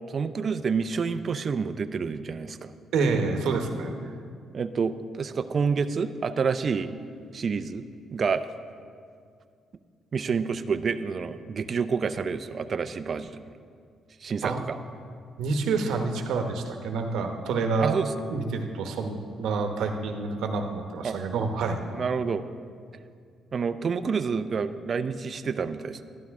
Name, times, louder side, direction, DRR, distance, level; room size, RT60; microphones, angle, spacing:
voice 1, 0.1-2.7 4.5-7.0 7.3-7.8 8.1-8.5 10.1-13.4 14.2-14.8 17.8-18.1 21.0-21.2 22.0-22.4 23.5-26.0, right 5 dB, 45° right, 10 dB, 0.5 m, -28 dB
voice 2, 2.9-4.0 14.4-14.6 15.4-18.0 18.3-21.9, right 4 dB, 80° right, 4 dB, 1.0 m, -28 dB
12.5 x 11.5 x 3.6 m, 2.2 s
cardioid pair, 90°, 0 cm